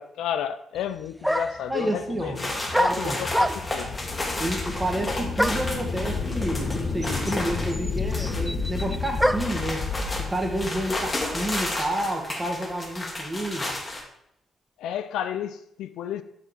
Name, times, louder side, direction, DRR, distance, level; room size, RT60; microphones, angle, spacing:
voice 1, 0.0-3.9 14.8-16.2, left 10 dB, 70° left, 0.3 m, -32 dB
sound 1, 0.8-0.9 1.2-1.7 2.7-3.9 5.4-5.8 6.7-6.8 7.0-9.6, equal, ahead, 0.4 m, -26 dB
voice 2, 1.7-2.4 2.9-3.2 4.4-9.9 10.2-13.7, right 1 dB, 20° right, 2.1 m, -30 dB
sound 2, 1.8-12.0, left 4 dB, 50° left, 1.1 m, -32 dB
sound 3, 2.4-14.0, left 2 dB, 25° left, 1.9 m, -33 dB
5.9 x 5.8 x 5.1 m
hypercardioid pair, 40°, 0 cm